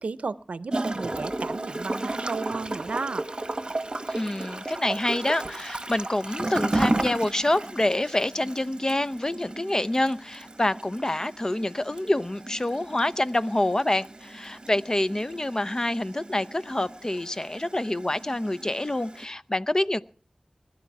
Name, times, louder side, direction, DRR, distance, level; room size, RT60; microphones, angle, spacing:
voice 1, 0.0-3.3, right 4 dB, 90° right, 0.6 m, -33 dB
Gurgling / Toilet flush, 0.7-19.2, right 2 dB, 40° right, 1.1 m, -34 dB
voice 2, 4.1-20.0, left 1 dB, 30° left, 0.7 m, -27 dB
20.5 x 11.5 x 4.8 m
wide cardioid pair, 70°, 2 cm